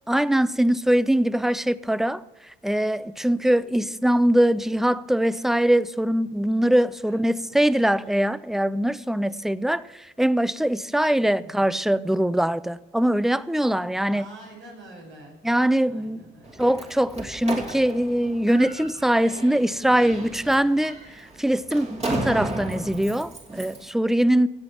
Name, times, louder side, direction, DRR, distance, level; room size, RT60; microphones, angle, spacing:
voice 1, 0.1-2.2 2.6-9.8 10.2-14.2 15.4-16.2 16.6-24.5, right 1 dB, ahead, 0.4 m, -22 dB
voice 2, 7.0-7.8 11.4-11.7 14.1-15.4 15.9-16.7, right 2 dB, 75° right, 5.7 m, -46 dB
Slam, 16.4-23.9, right 2 dB, 30° right, 2.7 m, -34 dB
16.0 x 7.8 x 5.8 m
cardioid pair, 90°, 20 cm